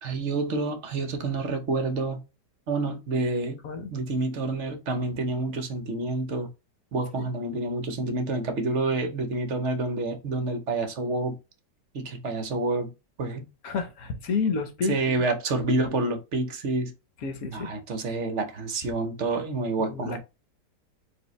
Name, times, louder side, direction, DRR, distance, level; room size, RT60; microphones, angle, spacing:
voice 1, 0.0-2.2 2.7-3.6 3.9-6.5 6.9-11.4 11.9-12.9 13.2-13.5 14.9-16.9 17.5-20.2, right 2 dB, 55° right, 0.9 m, -28 dB
voice 2, 13.6-15.2 17.2-17.7 19.8-20.2, left 4 dB, 60° left, 1.2 m, -30 dB
4.7 x 2.7 x 3.1 m
omnidirectional pair, 1.8 m